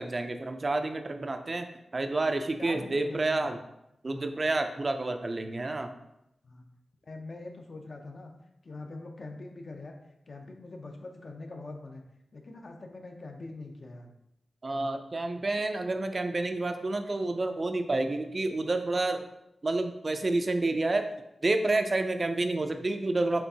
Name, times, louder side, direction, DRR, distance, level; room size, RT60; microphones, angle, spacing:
voice 1, 0.0-1.7 1.9-3.6 4.0-5.9 14.6-19.3 19.6-21.0 21.4-23.4, right 2 dB, 35° right, 7 dB, 0.3 m, -29 dB
voice 2, 2.6-3.5 4.1-4.4 6.4-6.7 7.0-8.3 8.6-10.0 10.3-12.0 12.3-14.1, left 2 dB, 50° left, 3 dB, 0.5 m, -43 dB
4.4 x 3.3 x 2.7 m, 0.84 s
wide cardioid pair, 100°, 0 cm